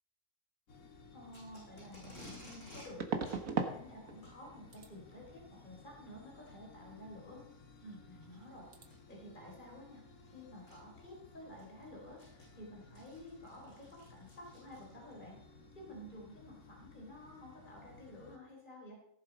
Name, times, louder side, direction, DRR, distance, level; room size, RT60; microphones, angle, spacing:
sound 1, 0.7-18.4, left 4 dB, 85° left, 1.9 m, -58 dB
voice 1, 1.1-7.4 7.8-15.4 15.7-18.9, left 1 dB, 35° left, -2 dB, 3.9 m, -52 dB
Packing tape duct tape, 1.3-2.9 3.2-3.4 4.1-4.4 5.5-5.7 6.4-6.5 7.2-7.3 8.8-9.1 10.2-10.3 10.7-10.8 11.3-15.2, left 1 dB, 65° left, 6.2 m, -55 dB
sound 2, 1.5-1.6 3.0-3.8 4.1-4.5 4.7-4.9 7.8-8.5 8.7-8.9, right 5 dB, 80° right, 1.7 m, -37 dB
17.5 x 7.6 x 5.2 m, 0.75 s
omnidirectional pair, 1.4 m